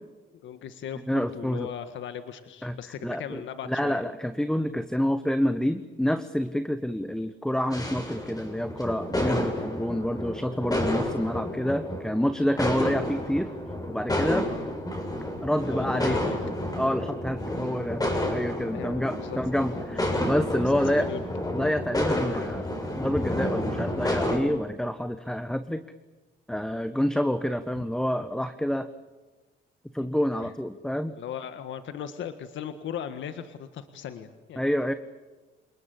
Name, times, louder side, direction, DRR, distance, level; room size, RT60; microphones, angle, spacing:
voice 1, 0.3-4.0 15.6-16.3 18.6-19.6 20.7-21.2 30.0-30.1 30.4-30.5 31.1-34.7, left 9 dB, 75° left, 9 dB, 1.7 m, -38 dB
voice 2, 1.1-1.7 2.6-13.5 13.9-14.5 15.4-16.2 16.8-21.1 21.5-25.8 26.5-28.9 29.9-31.1 34.6-34.9, equal, 5° left, 10 dB, 1.3 m, -28 dB
sound 1, 7.7-24.4, left 1 dB, 20° left, 6.7 m, -30 dB
28.5 x 20.0 x 8.5 m, 1.2 s
cardioid pair, 90°, 20 cm